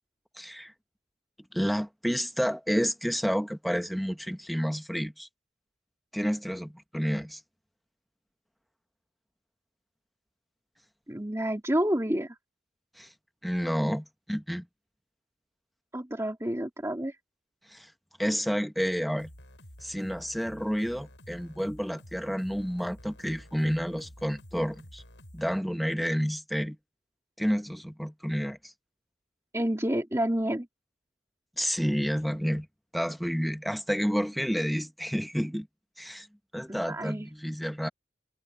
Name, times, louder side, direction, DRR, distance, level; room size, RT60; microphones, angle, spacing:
voice 1, 0.4-0.7 1.5-5.3 6.1-7.4 13.0-13.1 13.4-14.7 17.7-17.9 18.2-19.3 19.8-25.0 25.3-26.8 27.4-28.7 31.6-32.7 32.9-35.7 36.0-36.3 36.5-37.9, equal, ahead, 1.1 m, -30 dB
voice 2, 11.1-12.4 15.9-17.2 29.5-30.7 36.7-37.3, right 1 dB, 15° right, 2.5 m, -29 dB
sound 1, 19.2-25.6, equal, 85° left, 6.6 m, -50 dB
head